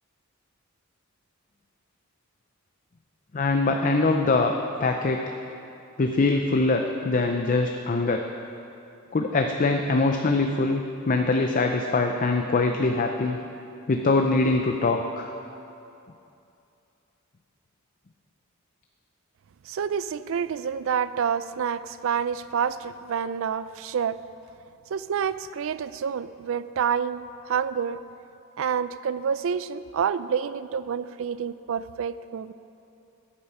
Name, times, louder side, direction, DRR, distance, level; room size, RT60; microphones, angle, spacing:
voice 1, 3.3-5.3 6.0-8.3 9.1-13.4 13.9-15.3, left 3 dB, 40° left, 4 dB, 0.5 m, -23 dB
voice 2, 19.7-24.2 24.9-28.0 28.6-32.5, right 7 dB, 65° right, 15 dB, 0.4 m, -28 dB
12.5 x 8.8 x 5.5 m, 2.7 s
head